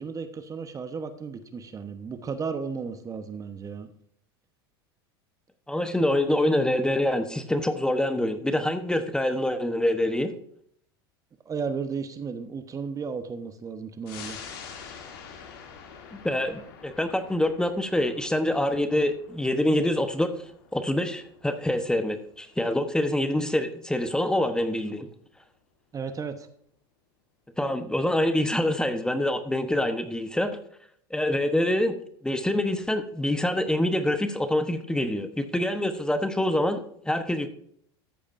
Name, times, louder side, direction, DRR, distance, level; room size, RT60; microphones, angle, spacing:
voice 1, 0.0-3.9 11.5-14.4 25.9-26.5, right 5 dB, 25° right, 9 dB, 1.1 m, -34 dB
voice 2, 5.7-10.3 16.1-20.3 20.7-25.1 27.6-30.6 31.1-31.9 32.2-37.5, left 1 dB, 5° left, 8 dB, 1.0 m, -25 dB
sound 1, 14.1-25.0 25.4-25.5, left 6 dB, 70° left, 2.7 m, -47 dB
13.5 x 8.5 x 2.6 m, 0.65 s
hypercardioid pair, 95°, 13 cm